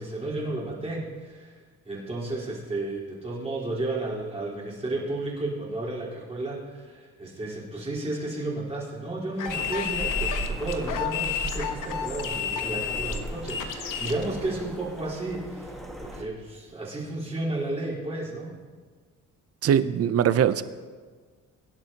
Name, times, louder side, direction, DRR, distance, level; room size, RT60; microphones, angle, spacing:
voice 1, 0.0-1.6 1.8-18.6, right 2 dB, 20° right, -6 dB, 4.2 m, -33 dB
sound 1, 9.4-14.2, left 9 dB, 70° left, 1.2 m, -31 dB
sound 2, 9.5-16.2, right 1 dB, ahead, 1.5 m, -37 dB
voice 2, 19.6-20.6, right 9 dB, 45° right, 13 dB, 0.6 m, -21 dB
23.5 x 11.0 x 2.9 m, 1.5 s
cardioid pair, 135°, 33 cm